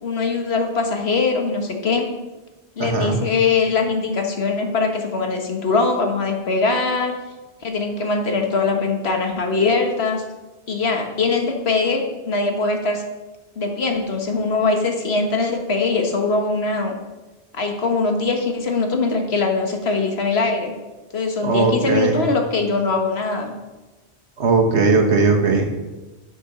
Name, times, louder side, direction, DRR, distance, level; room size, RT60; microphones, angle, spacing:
voice 1, 0.0-2.1 2.8-7.2 7.6-10.2 10.7-13.0 13.6-16.9 17.5-20.7 21.1-23.5, left 4 dB, 70° left, 4 dB, 1.6 m, -22 dB
voice 2, 2.8-3.2 21.4-22.2 24.4-25.6, right 4 dB, 85° right, 3 dB, 1.6 m, -18 dB
8.1 x 6.9 x 6.7 m, 1.1 s
omnidirectional pair, 1.1 m